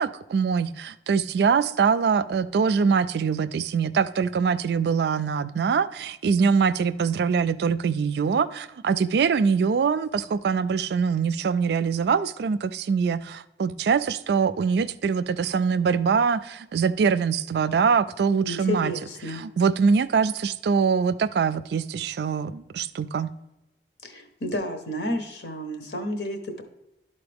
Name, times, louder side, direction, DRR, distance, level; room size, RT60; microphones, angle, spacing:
voice 1, 0.0-18.9 19.3-23.3, right 6 dB, 60° right, 14 dB, 0.3 m, -23 dB
voice 2, 18.4-19.4 24.0-26.6, left 1 dB, 70° left, 5 dB, 1.1 m, -31 dB
11.5 x 4.1 x 3.5 m, 0.91 s
head